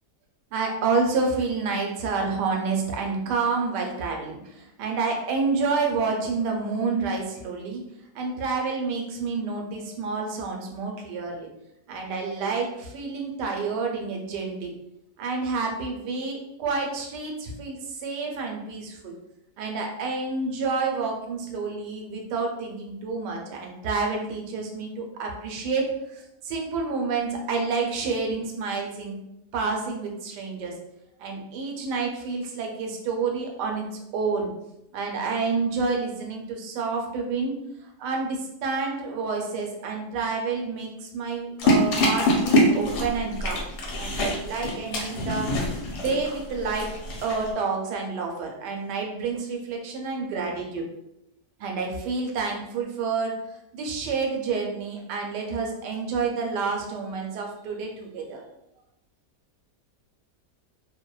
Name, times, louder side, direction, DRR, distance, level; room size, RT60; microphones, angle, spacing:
voice 1, 0.5-7.8 8.1-11.5 11.9-14.7 15.2-19.1 19.6-29.2 29.5-30.7 31.2-34.5 34.9-37.5 38.0-43.6 44.0-45.5 46.0-46.9 47.2-50.8 51.6-58.4, right 4 dB, 90° right, 1 dB, 1.2 m, -29 dB
sound 1, 41.6-47.5, left 1 dB, 80° left, 1.2 m, -25 dB
2.8 x 2.1 x 2.2 m, 0.84 s
omnidirectional pair, 1.8 m